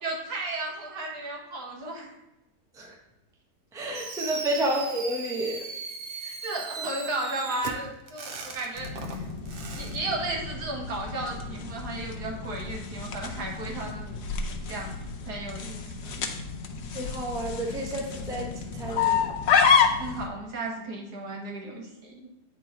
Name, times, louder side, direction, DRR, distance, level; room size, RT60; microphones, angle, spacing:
voice 1, 0.0-2.1 4.3-4.4 6.2-9.2 9.7-14.2 14.7-14.9 15.3-16.3 20.0-22.3, right 2 dB, 80° right, 0 dB, 2.0 m, -34 dB
voice 2, 3.7-5.6 6.8-6.9 16.9-18.5 18.8-19.3, right 1 dB, 5° right, 0 dB, 0.8 m, -30 dB
Fireworks, 3.9-10.0, right 4 dB, 50° right, 0.7 m, -38 dB
sound 1, 8.8-20.3, left 6 dB, 90° left, 1.4 m, -29 dB
8.5 x 3.8 x 4.4 m, 0.95 s
omnidirectional pair, 1.7 m